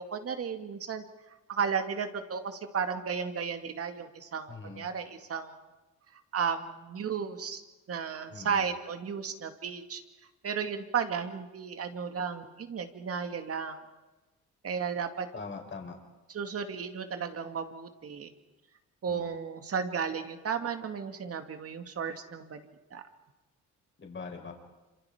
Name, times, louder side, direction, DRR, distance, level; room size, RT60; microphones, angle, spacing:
voice 1, 0.0-5.6 6.1-7.6 7.9-10.0 10.4-13.8 14.6-15.3 16.3-18.3 19.0-23.0, right 6 dB, 50° right, 7 dB, 2.3 m, -34 dB
voice 2, 4.5-4.9 8.3-8.6 15.3-16.0 19.1-19.3 24.0-24.5, left 4 dB, 40° left, 2 dB, 5.1 m, -42 dB
27.5 x 26.0 x 5.1 m, 1.1 s
cardioid pair, 90°, 30 cm